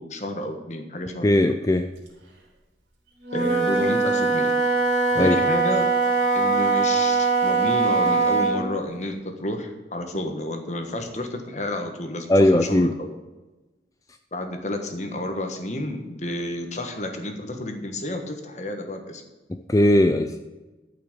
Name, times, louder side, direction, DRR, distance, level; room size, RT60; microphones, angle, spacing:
voice 1, 0.0-1.3 3.3-4.5 5.2-5.9 6.3-13.1 14.3-19.2, left 1 dB, 40° left, 5 dB, 1.4 m, -30 dB
voice 2, 1.2-1.9 5.2-5.4 12.3-12.9 19.7-20.4, left 1 dB, 20° left, 7 dB, 0.4 m, -18 dB
Wind instrument woodwind instrument, 3.2-8.6, right 4 dB, 75° right, 3.2 m, -21 dB
12.5 x 5.8 x 7.3 m, 1.1 s
head